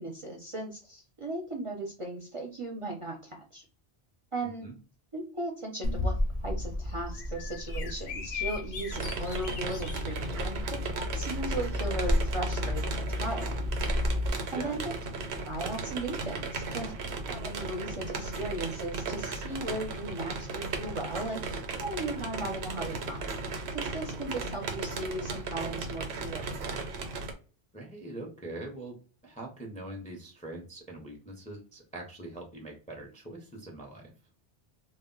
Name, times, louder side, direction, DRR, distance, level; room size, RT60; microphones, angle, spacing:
voice 1, 0.0-3.6 4.3-4.7 5.1-6.1 6.4-13.7 14.5-14.8 15.5-23.3 23.7-26.7, right 2 dB, 40° right, 0 dB, 0.5 m, -37 dB
voice 2, 4.4-4.7 14.6-14.7 27.7-29.0 29.2-34.1, right 2 dB, 10° left, 0 dB, 0.4 m, -43 dB
Bird vocalization bird call bird song, 5.8-14.3, left 1 dB, 55° left, 0.6 m, -32 dB
sound 1, 8.9-27.3, right 3 dB, 85° right, 0.9 m, -36 dB
2.1 x 2.1 x 3.7 m, 0.36 s
omnidirectional pair, 1.1 m